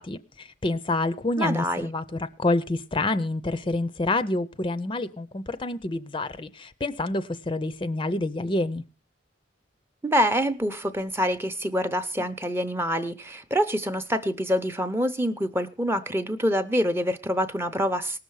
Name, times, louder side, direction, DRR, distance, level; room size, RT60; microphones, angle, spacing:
voice 1, 0.0-8.8, left 2 dB, 25° left, 0.6 m, -28 dB
voice 2, 1.4-1.9 10.0-18.2, equal, 10° right, 0.7 m, -26 dB
18.5 x 6.7 x 4.7 m
head